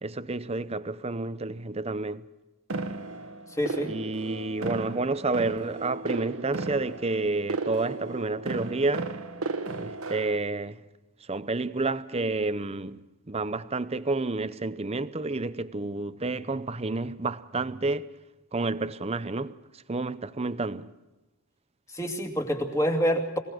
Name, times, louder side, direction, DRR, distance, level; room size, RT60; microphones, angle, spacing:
voice 1, 0.0-2.2 3.8-9.1 9.8-10.8 11.3-13.0 13.3-18.1 18.5-19.6 19.9-20.9, right 3 dB, 30° right, 0.7 m, -30 dB
sound 1, 2.7-10.4, right 3 dB, 70° right, 1.3 m, -35 dB
voice 2, 3.6-3.9 21.9-23.4, equal, 15° left, 2.6 m, -26 dB
26.0 x 18.0 x 6.2 m
head